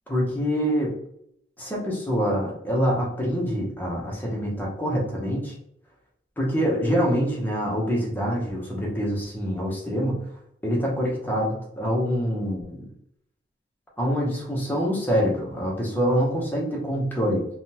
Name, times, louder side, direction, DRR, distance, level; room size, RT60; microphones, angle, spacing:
voice 1, 0.1-0.9 1.6-5.5 6.4-10.2 10.6-12.9 14.0-17.5, equal, 10° left, -3 dB, 0.8 m, -25 dB
3.5 x 2.2 x 2.8 m, 0.72 s
head